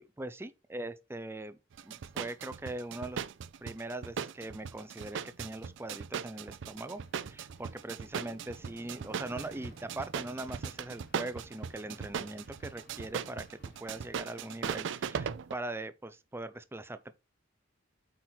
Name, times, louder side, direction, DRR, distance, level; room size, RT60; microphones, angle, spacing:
voice 1, 0.0-3.2 3.6-17.1, right 2 dB, 10° right, 0.6 m, -41 dB
sound 1, 1.7-15.6, right 7 dB, 65° right, 0.4 m, -38 dB
Motorcycle, 5.7-15.1, right 1 dB, 40° right, 1.3 m, -57 dB
sound 2, 6.9-15.0, left 4 dB, 55° left, 0.9 m, -61 dB
8.4 x 4.4 x 4.1 m
head